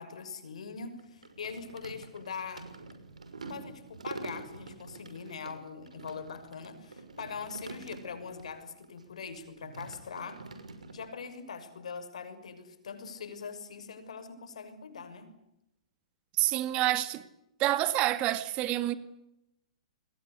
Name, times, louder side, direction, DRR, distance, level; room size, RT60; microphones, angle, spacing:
voice 1, 0.0-2.7 3.5-10.4 10.9-15.3, left 5 dB, 75° left, 6.3 m, -42 dB
sound 1, 0.7-8.5 8.8-11.1, right 3 dB, 85° right, 6.1 m, -46 dB
voice 2, 16.4-17.2 17.6-19.0, right 15 dB, 35° right, 2.0 m, -27 dB
28.5 x 22.0 x 8.3 m
hypercardioid pair, 120°, 4 cm